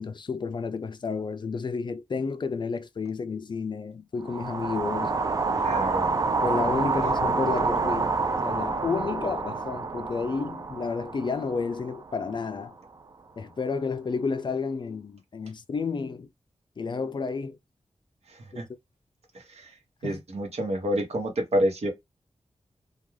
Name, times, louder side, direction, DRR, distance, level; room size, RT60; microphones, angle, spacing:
voice 1, 0.0-5.2 6.4-8.2 8.4-12.8 13.4-16.3 16.8-17.6 18.5-18.6 20.0-20.2, left 4 dB, 45° left, 0.4 m, -31 dB
sound 1, 4.2-12.5, right 4 dB, 30° right, 0.4 m, -28 dB
voice 2, 5.6-6.2 18.3-18.6 19.3-19.7 20.0-21.9, equal, 65° right, 1.0 m, -28 dB
2.4 x 2.3 x 3.0 m
wide cardioid pair, 140°, 11 cm